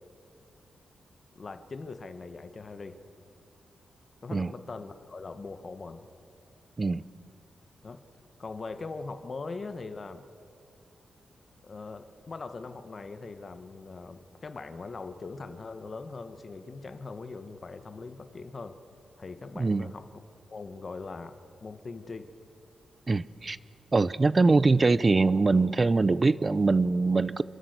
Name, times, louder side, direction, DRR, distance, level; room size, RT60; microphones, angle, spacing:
voice 1, 1.3-3.0 4.2-6.1 7.8-8.0 8.4-10.3 11.6-18.8 19.2-20.0 20.5-22.3, left 3 dB, 35° left, 9 dB, 1.2 m, -41 dB
voice 2, 19.6-19.9 23.1-23.6 23.9-27.4, right 3 dB, 25° right, 18 dB, 0.5 m, -23 dB
30.0 x 11.0 x 7.9 m, 2.8 s
wide cardioid pair, 140°, 0 cm